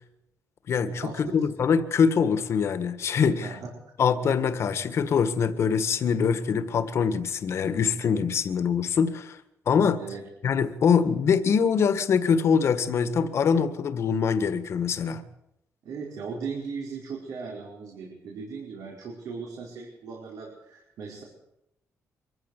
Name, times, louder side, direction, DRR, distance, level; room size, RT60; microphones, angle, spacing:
voice 1, 0.7-3.5 4.0-9.4 9.6-10.0 10.4-15.2, left 6 dB, 50° left, 11 dB, 1.6 m, -24 dB
voice 2, 15.8-21.2, right 5 dB, 80° right, -2 dB, 5.0 m, -37 dB
24.5 x 14.5 x 8.2 m, 0.84 s
cardioid pair, 160°, 6 cm